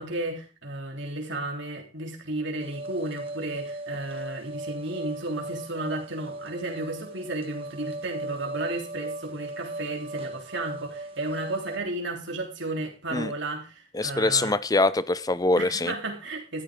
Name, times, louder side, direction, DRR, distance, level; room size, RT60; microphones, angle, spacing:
voice 1, 0.0-14.6 15.6-16.6, right 2 dB, 65° right, 3.5 m, -33 dB
sound 1, 2.6-11.8, right 2 dB, 30° right, 1.6 m, -38 dB
voice 2, 13.9-15.9, left 2 dB, 20° left, 0.6 m, -24 dB
14.0 x 13.0 x 3.7 m
head